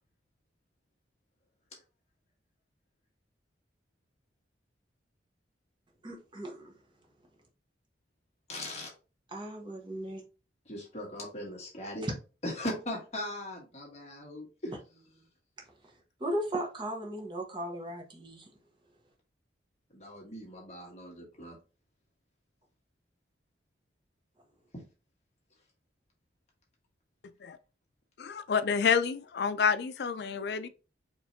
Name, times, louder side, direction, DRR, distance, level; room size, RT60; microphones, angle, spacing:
voice 1, 6.0-6.7 9.3-10.2 16.2-18.4, right 1 dB, 25° right, 0.9 m, -36 dB
voice 2, 8.5-8.9 10.7-12.1 12.4-15.0 19.9-21.6 24.7-24.8, left 1 dB, 35° left, 1.3 m, -39 dB
voice 3, 28.2-30.7, left 6 dB, 65° left, 0.4 m, -28 dB
4.4 x 3.2 x 2.7 m
head